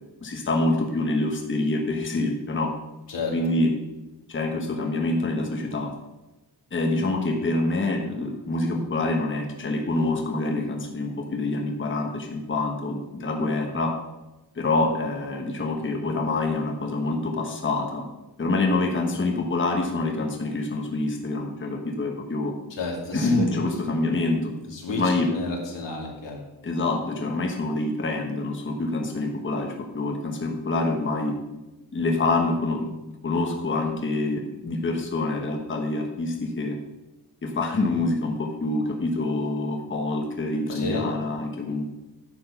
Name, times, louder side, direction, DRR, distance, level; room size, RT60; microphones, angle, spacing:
voice 1, 0.2-2.7 3.3-3.7 4.3-5.9 6.7-13.9 14.5-18.1 18.4-22.5 23.1-24.5 24.9-25.3 26.6-31.3 31.9-32.9 33.2-36.8 37.4-41.8, left 2 dB, 30° left, 2 dB, 1.2 m, -26 dB
voice 2, 22.8-23.3 24.7-25.0 25.3-26.4 40.7-41.1, left 3 dB, 85° left, -1 dB, 2.7 m, -31 dB
9.8 x 6.3 x 5.8 m, 1.0 s
wide cardioid pair, 155°, 42 cm